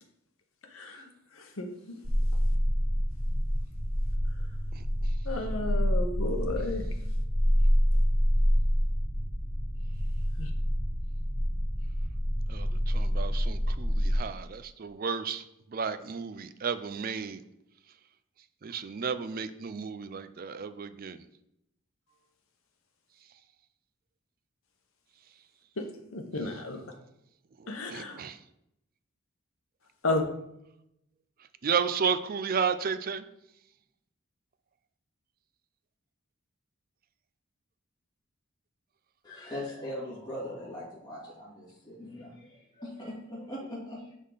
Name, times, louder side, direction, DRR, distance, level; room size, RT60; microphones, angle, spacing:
voice 1, 0.7-1.7 5.2-6.8 10.4-10.5 25.8-25.9 26.1-26.8 27.7-28.2 30.0-30.3, left 2 dB, 80° left, 4 dB, 1.1 m, -32 dB
sound 1, 2.0-14.2, equal, ahead, 1.1 m, -27 dB
voice 2, 4.7-5.2 12.5-17.4 18.6-21.2 27.6-28.4 31.6-33.2, right 6 dB, 45° right, 12 dB, 0.4 m, -33 dB
voice 3, 39.2-44.1, left 1 dB, 20° left, -8 dB, 2.2 m, -40 dB
9.6 x 3.7 x 4.0 m, 0.81 s
head